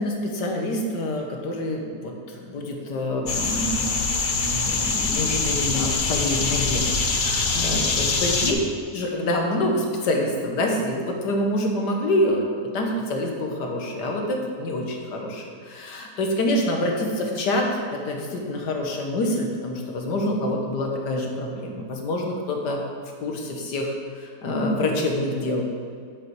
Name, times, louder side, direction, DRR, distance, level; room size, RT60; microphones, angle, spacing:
voice 1, 0.0-8.6 8.9-22.8 23.2-25.7, left 1 dB, 85° left, 1 dB, 1.8 m, -26 dB
sound 1, 3.3-8.5, left 4 dB, 45° left, 0.6 m, -24 dB
8.0 x 7.7 x 4.6 m, 2.2 s
omnidirectional pair, 1.8 m